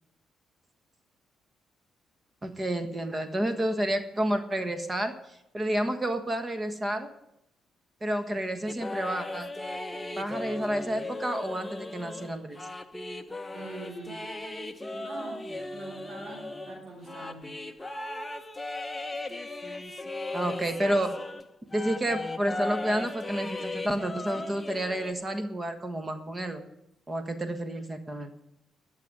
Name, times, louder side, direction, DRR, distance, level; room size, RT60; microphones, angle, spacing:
voice 1, 2.4-5.1 5.5-7.1 8.0-9.5 10.2-12.6 20.3-21.2 21.7-26.6 27.1-28.3, right 1 dB, 20° right, 8 dB, 1.5 m, -30 dB
sound 1, 8.7-21.4 21.7-25.1, left 2 dB, 15° left, 1.0 m, -37 dB
voice 2, 13.5-14.3 14.9-17.5, right 2 dB, 65° right, 0 dB, 4.5 m, -43 dB
12.5 x 7.0 x 9.7 m, 0.84 s
cardioid pair, 90°, 0 cm